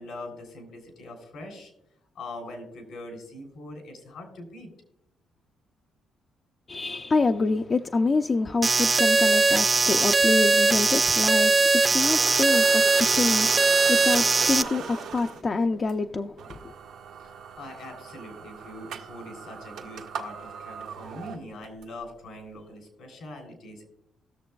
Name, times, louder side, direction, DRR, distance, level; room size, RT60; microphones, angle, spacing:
voice 1, 0.0-1.7 2.1-4.7 17.2-23.8, left 1 dB, 80° left, 3.1 m, -42 dB
voice 2, 6.7-16.7, left 3 dB, 35° left, 0.4 m, -27 dB
sound 1, 8.6-14.6, right 3 dB, 30° right, 0.5 m, -20 dB
sound 2, 12.0-15.4 15.9-16.0 16.4-21.8, right 7 dB, 85° right, 0.9 m, -39 dB
19.0 x 6.7 x 2.3 m
cardioid pair, 90°, 0 cm